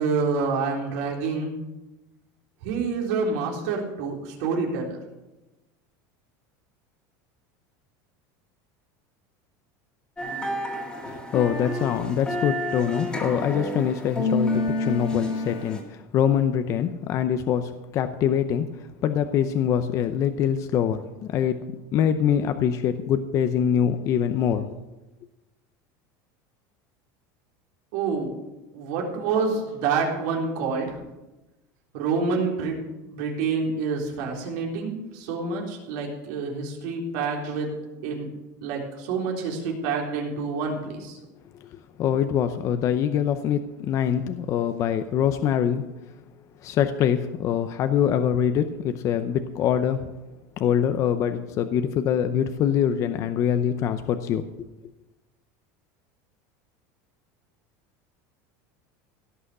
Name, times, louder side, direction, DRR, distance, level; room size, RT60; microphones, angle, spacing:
voice 1, 0.0-1.5 2.6-5.0 27.9-28.3 28.7-30.9 31.9-32.8 33.1-37.7 38.0-38.3 38.6-41.1, right 4 dB, 65° right, -1 dB, 3.7 m, -27 dB
sound 1, 10.2-15.8, left 1 dB, 10° left, 2.1 m, -29 dB
voice 2, 11.0-21.0 21.3-21.6 21.9-24.7 41.7-45.8 46.6-50.0 50.6-54.5, left 9 dB, 35° left, 9 dB, 0.6 m, -24 dB
16.5 x 6.2 x 7.8 m, 1.0 s
supercardioid pair, 160°, 9 cm